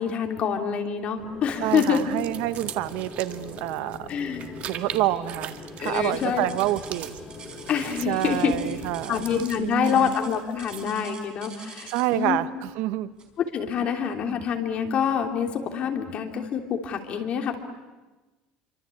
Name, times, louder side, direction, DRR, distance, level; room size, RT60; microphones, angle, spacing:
voice 1, 0.0-2.0 4.1-4.5 5.8-6.5 7.7-8.5 9.1-12.4 13.5-17.6, left 7 dB, 40° left, 4 dB, 3.1 m, -26 dB
sound 1, 1.2-9.5, left 3 dB, 20° left, 3.8 m, -42 dB
sound 2, 1.6-11.0, right 10 dB, 45° right, 1.8 m, -42 dB
voice 2, 1.6-4.1 4.7-5.5 5.8-7.2 8.1-9.3 9.6-10.1 11.9-13.1 13.8-14.0, right 15 dB, 70° right, 13 dB, 1.1 m, -28 dB
sound 3, 5.8-12.2 13.2-13.4 14.0-14.1 14.8-14.9, right 5 dB, 25° right, 4.6 m, -46 dB
28.0 x 25.0 x 8.5 m, 1.2 s
cardioid pair, 155°, 3 cm